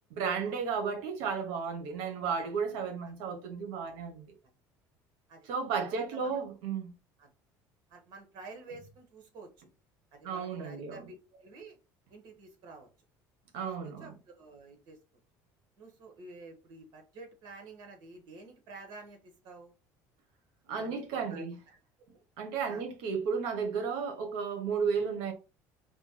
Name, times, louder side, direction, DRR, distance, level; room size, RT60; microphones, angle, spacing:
voice 1, 0.1-4.3 5.5-6.9 10.2-11.1 13.5-14.1 20.7-21.6 22.4-25.3, right 6 dB, 85° right, 0.9 m, -33 dB
voice 2, 5.7-6.4 7.2-7.3 7.9-9.7 10.1-11.8 12.1-12.9 13.6-15.0 15.8-19.7 20.7-21.8 22.1-22.2 22.7-22.8, right 3 dB, 60° right, 1.4 m, -50 dB
4.1 x 2.2 x 3.1 m
cardioid pair, 120°, 8 cm